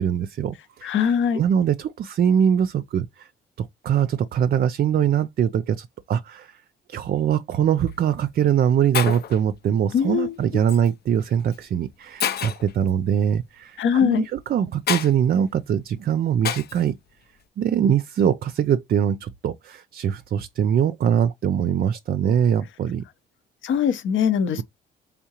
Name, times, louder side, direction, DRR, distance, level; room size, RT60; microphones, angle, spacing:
voice 1, 0.0-1.1 1.4-3.3 3.6-6.6 6.9-16.9 17.6-23.0, right 9 dB, 50° right, 0.4 m, -22 dB
voice 2, 0.8-1.4 9.9-10.3 13.8-14.2 23.6-24.6, left 7 dB, 75° left, 1.0 m, -21 dB
Shatter, 7.7-7.9 8.6-8.7 8.9-9.4 10.7-10.9 11.5-11.6 12.2-12.7 14.9-15.1 16.4-16.8, left 9 dB, 55° left, 0.6 m, -27 dB
3.6 x 3.6 x 2.9 m
cardioid pair, 90°, 20 cm